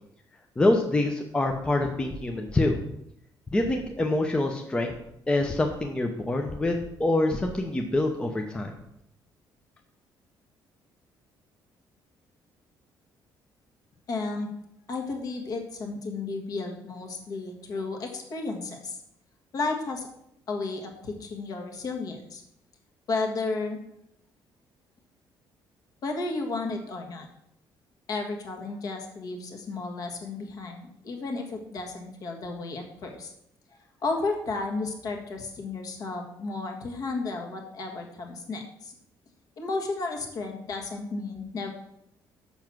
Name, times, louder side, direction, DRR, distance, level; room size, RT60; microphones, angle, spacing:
voice 1, 0.6-2.8 3.5-4.9 5.3-8.7, left 2 dB, 10° left, 3 dB, 0.6 m, -25 dB
voice 2, 14.1-14.5 14.9-19.0 19.5-20.1 20.5-22.4 23.1-23.8 26.0-27.3 28.1-33.3 34.0-38.9 39.6-41.7, left 3 dB, 50° left, 2 dB, 1.5 m, -33 dB
7.0 x 5.8 x 6.1 m, 0.76 s
cardioid pair, 175°, 8 cm